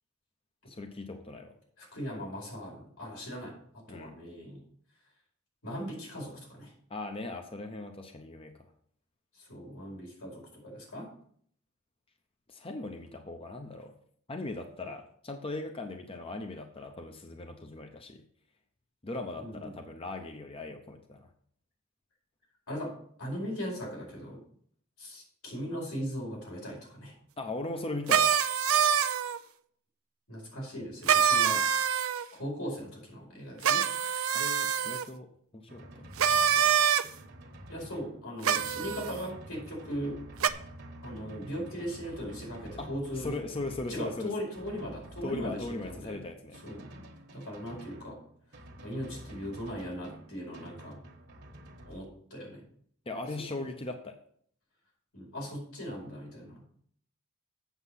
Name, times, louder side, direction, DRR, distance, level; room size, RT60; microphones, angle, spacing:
voice 1, 0.6-1.5 3.9-4.1 6.9-8.5 12.5-13.9 14.3-18.2 19.0-21.3 27.4-28.4 34.3-35.3 35.5-36.1 36.6-36.7 42.8-42.9 43.2-44.3 45.2-46.5 53.1-54.1, left 2 dB, 25° left, 5 dB, 0.7 m, -39 dB
voice 2, 1.8-3.5 3.9-4.6 5.6-6.7 9.3-11.1 19.4-19.7 22.7-22.9 23.2-24.4 25.0-27.1 30.3-31.6 32.3-33.8 37.7-40.2 41.0-43.4 43.9-46.2 46.6-46.9 47.3-48.2 48.8-51.0 51.9-52.6 55.1-56.6, equal, 90° left, -2 dB, 5.0 m, -39 dB
sound 1, 28.1-29.4 31.1-32.2 33.6-35.0 36.2-37.0 38.4-39.1 40.4-40.5, right 8 dB, 75° right, 0.6 m, -25 dB
Drum, 35.7-52.1, right 1 dB, 50° right, 1.4 m, -49 dB
8.1 x 7.0 x 5.6 m, 0.62 s
head